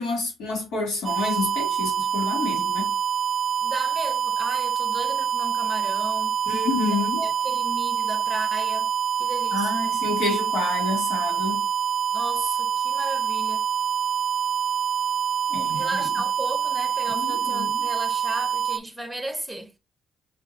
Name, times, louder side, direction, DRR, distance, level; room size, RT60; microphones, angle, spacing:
voice 1, 0.0-3.0 6.5-7.2 9.5-11.7 15.5-16.1 17.1-17.9, left 3 dB, 85° left, 2.3 m, -29 dB
sound 1, 1.0-18.8, right 8 dB, 45° right, 0.5 m, -26 dB
voice 2, 3.6-6.4 7.2-8.9 9.2-9.8 12.1-13.7 15.7-19.7, right 1 dB, ahead, 1.0 m, -35 dB
4.7 x 3.5 x 2.8 m
cardioid pair, 90°, 0 cm